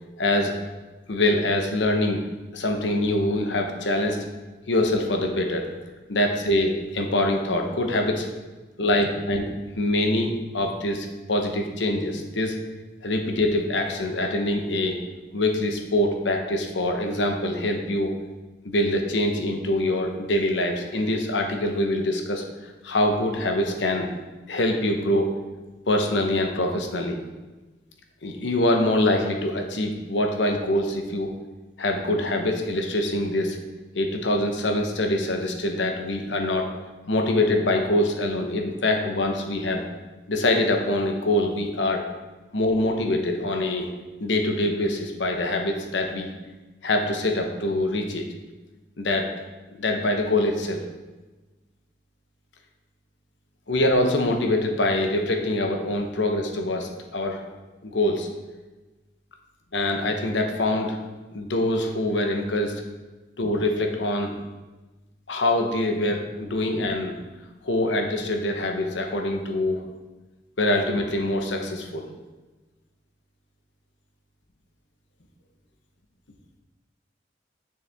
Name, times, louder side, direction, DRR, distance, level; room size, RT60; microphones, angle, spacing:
voice 1, 0.2-0.6 1.1-2.2 2.5-4.2 4.7-5.7 6.1-8.3 8.8-9.5 9.7-12.6 13.0-15.0 15.3-18.1 18.6-22.4 22.8-24.1 24.5-25.3 25.9-27.2 28.2-31.3 31.8-33.6 33.9-36.6 37.1-39.8 40.3-42.0 42.5-43.9 44.2-46.3 46.8-48.2 49.0-49.3 49.8-50.8 53.7-57.4 57.8-58.3 59.7-61.0 61.3-62.8 63.4-64.4 65.3-67.1 67.6-69.8 70.6-72.1, left 1 dB, 90° left, 3 dB, 0.9 m, -24 dB
6.8 x 6.6 x 3.5 m, 1.2 s
head